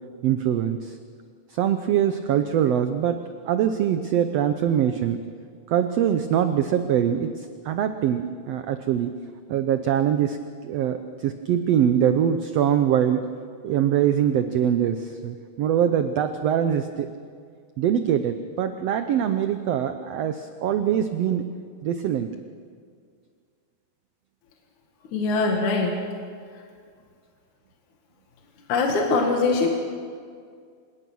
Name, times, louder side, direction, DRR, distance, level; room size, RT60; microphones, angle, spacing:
voice 1, 0.2-1.0 1.5-5.2 5.7-9.1 9.5-10.4 10.6-13.3 13.6-17.1 17.8-21.4 21.8-22.3, right 9 dB, 75° right, 9 dB, 1.5 m, -23 dB
voice 2, 25.1-26.1 28.7-29.7, left 3 dB, 65° left, 1 dB, 3.1 m, -22 dB
27.0 x 18.0 x 6.3 m, 2.1 s
omnidirectional pair, 3.8 m